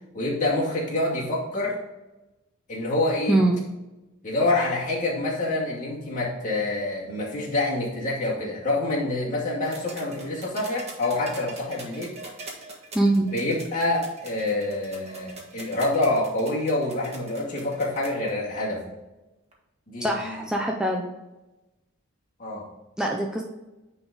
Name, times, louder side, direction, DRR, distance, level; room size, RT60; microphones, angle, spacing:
voice 1, 0.1-1.7 2.7-3.4 4.2-12.1 13.2-18.9 19.9-20.4 22.4-22.7, left 2 dB, 40° left, -4 dB, 2.3 m, -27 dB
voice 2, 3.3-3.6 12.9-13.3 20.0-21.1 23.0-23.4, right 1 dB, 5° right, -1 dB, 0.6 m, -23 dB
sound 1, 9.6-18.3 19.5-19.6, right 3 dB, 30° right, 1.7 m, -42 dB
9.6 x 4.0 x 3.9 m, 1.0 s
head